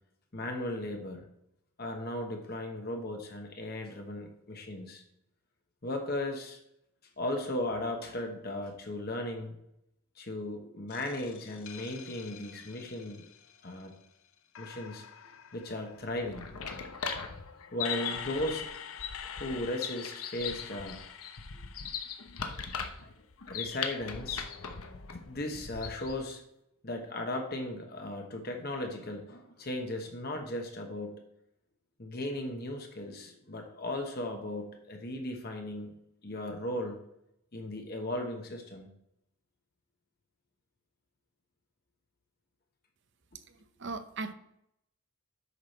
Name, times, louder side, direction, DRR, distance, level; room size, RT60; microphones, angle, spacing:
voice 1, 0.3-1.2 1.8-5.0 5.8-6.6 7.2-9.5 10.2-13.2 13.6-13.9 14.6-16.5 17.7-18.6 19.2-21.0 21.6-21.7 23.5-24.5 25.1-26.4 26.8-31.2 32.0-35.9 36.2-37.0 37.5-38.9, left 1 dB, 45° left, 3 dB, 1.1 m, -36 dB
sound 1, 10.9-14.1 14.5-22.9 24.0-25.4, left 7 dB, 70° left, 0.6 m, -47 dB
sound 2, 16.0-26.2, left 6 dB, 90° left, 1.0 m, -39 dB
voice 2, 43.5-44.3, right 3 dB, 55° right, 10 dB, 0.7 m, -39 dB
8.3 x 6.2 x 4.2 m, 0.79 s
head